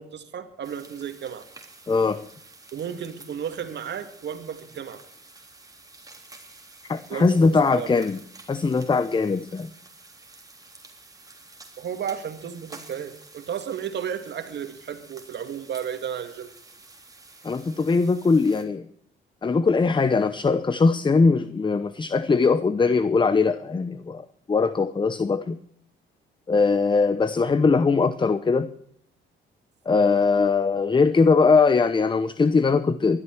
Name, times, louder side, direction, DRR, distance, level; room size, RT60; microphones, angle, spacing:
voice 1, 0.0-1.5 2.7-5.0 7.1-8.0 11.8-16.5, right 8 dB, 60° right, 2.1 m, -33 dB
sound 1, 0.6-18.6, right 3 dB, 20° right, 3.4 m, -49 dB
voice 2, 1.9-2.3 6.9-8.2 8.5-9.7 17.4-18.9 19.4-25.6 26.5-28.7 29.9-33.2, left 4 dB, 25° left, 0.8 m, -21 dB
20.0 x 12.5 x 4.5 m
cardioid pair, 90°, 20 cm